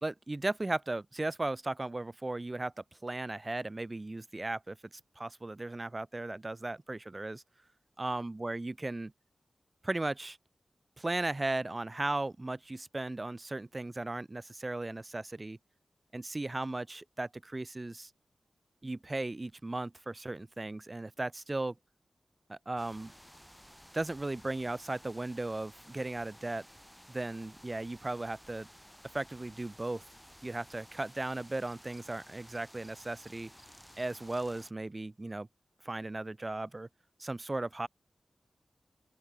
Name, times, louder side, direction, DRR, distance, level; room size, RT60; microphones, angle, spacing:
voice 1, 0.0-4.8 5.2-7.4 8.0-9.1 9.8-10.4 11.0-15.6 16.1-18.1 18.8-21.7 22.5-23.1 23.9-26.7 27.1-28.7 29.1-30.0 30.4-33.5 34.0-35.5 35.8-36.9 37.2-37.9, right 2 dB, 30° right, 0.9 m, -36 dB
sound 1, 22.8-34.7, equal, ahead, 4.0 m, -55 dB
open air
cardioid pair, 60°, 0 cm